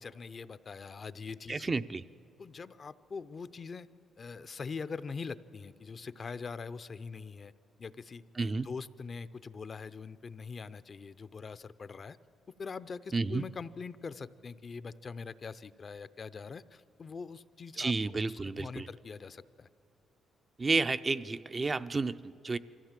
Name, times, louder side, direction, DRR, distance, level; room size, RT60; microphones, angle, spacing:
voice 1, 0.0-1.8 2.4-3.9 4.2-7.5 7.8-8.2 8.6-12.2 12.6-19.7, left 5 dB, 45° left, 14 dB, 0.5 m, -43 dB
voice 2, 1.5-2.0 8.4-8.7 13.1-13.4 17.8-18.9 20.6-22.6, right 3 dB, 30° right, 11 dB, 0.5 m, -31 dB
23.5 x 15.0 x 7.5 m, 2.8 s
cardioid pair, 80°, 0 cm